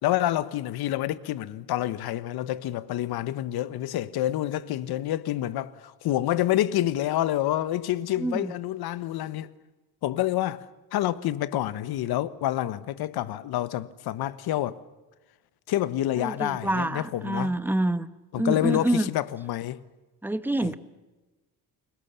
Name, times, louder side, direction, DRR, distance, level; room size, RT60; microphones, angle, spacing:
voice 1, 0.0-9.5 10.0-10.7 10.9-14.8 15.7-17.5 18.3-19.8 20.6-20.7, left 13 dB, 70° left, 1.3 m, -28 dB
voice 2, 8.2-8.5 16.2-18.1 18.4-19.1 20.2-20.7, right 1 dB, 5° right, 1.3 m, -27 dB
30.0 x 21.0 x 7.0 m
cardioid pair, 95°, 39 cm